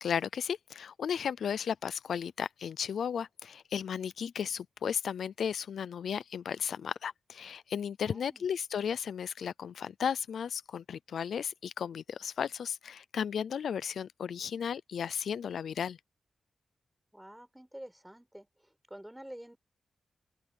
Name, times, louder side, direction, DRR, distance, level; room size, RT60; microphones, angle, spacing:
voice 1, 0.0-16.0, left 7 dB, 80° left, 0.5 m, -34 dB
voice 2, 8.0-8.5 17.1-18.5 18.9-19.6, right 1 dB, 5° right, 5.4 m, -48 dB
open air
wide cardioid pair, 115°, 0 cm